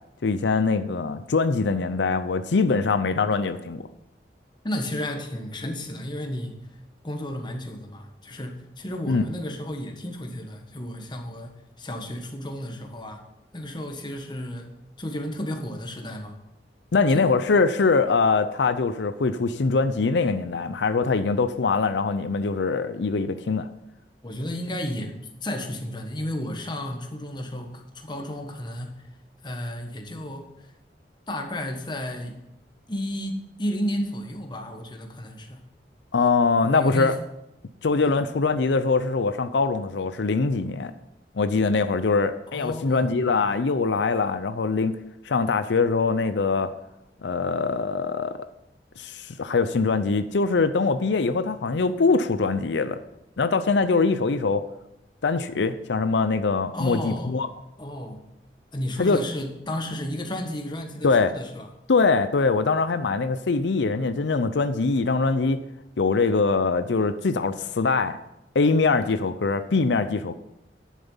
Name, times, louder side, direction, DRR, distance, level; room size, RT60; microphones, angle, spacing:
voice 1, 0.2-3.9 9.1-9.2 16.9-23.7 36.1-37.2 37.8-40.9 41.3-44.9 45.2-46.7 47.2-48.5 49.0-53.0 53.4-54.6 55.2-57.5 59.0-59.2 61.0-61.3 61.9-65.6 66.0-68.2 68.5-70.3, left 4 dB, 90° left, 11 dB, 0.6 m, -23 dB
voice 2, 4.6-6.6 7.0-13.2 13.5-14.7 15.0-16.4 17.1-17.3 24.2-25.1 25.4-29.1 29.4-30.7 31.3-32.4 32.9-35.6 36.2-36.3 36.6-37.1 37.9-38.2 42.5-43.2 56.7-57.3 57.8-58.2 58.7-61.7, left 1 dB, 25° left, 4 dB, 1.4 m, -33 dB
10.5 x 7.4 x 5.6 m, 0.85 s
head